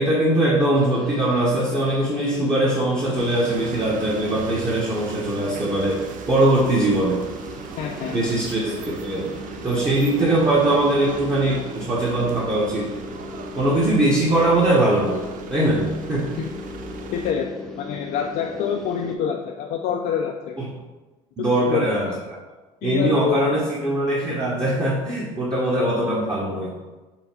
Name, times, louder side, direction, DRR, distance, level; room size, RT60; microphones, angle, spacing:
voice 1, 0.0-7.3 8.1-9.3 9.6-12.9 13.6-15.2 15.5-16.3 21.4-22.4 22.8-26.8, right 1 dB, 20° right, -5 dB, 1.0 m, -21 dB
sound 1, 0.7-19.2, left 3 dB, ahead, 0.8 m, -38 dB
sound 2, 3.2-17.3, right 7 dB, 50° right, 0.5 m, -38 dB
voice 2, 7.8-8.2 17.1-17.5 17.8-20.6 21.4-21.9 22.8-23.6, left 7 dB, 60° left, 2 dB, 0.5 m, -26 dB
5.5 x 2.2 x 4.4 m, 1.2 s
hypercardioid pair, 75°, 17 cm